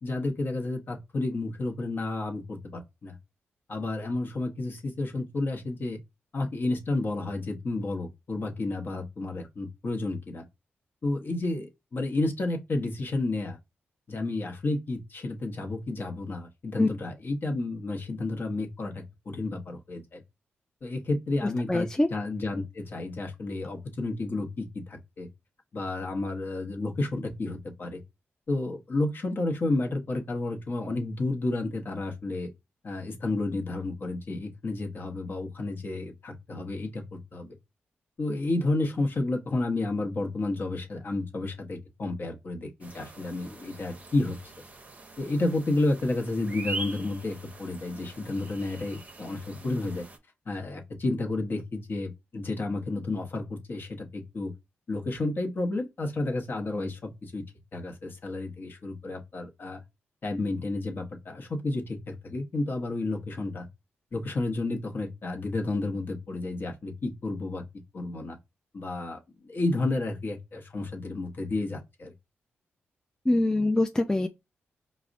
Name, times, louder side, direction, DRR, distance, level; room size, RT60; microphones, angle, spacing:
voice 1, 0.0-3.2 3.7-6.0 6.3-10.4 11.0-13.6 14.1-20.2 20.8-25.3 25.7-28.0 28.5-32.5 32.8-37.6 38.2-44.4 45.2-50.1 50.5-54.5 54.9-57.4 57.7-59.8 60.2-63.7 64.1-67.6 67.9-68.4 68.7-72.1, left 2 dB, 50° left, 0.8 m, -31 dB
voice 2, 21.7-22.1 73.3-74.3, left 2 dB, 15° left, 0.3 m, -24 dB
sound 1, 42.8-50.2, right 3 dB, 35° right, 0.6 m, -43 dB
4.8 x 2.0 x 2.5 m
cardioid pair, 75°, 4 cm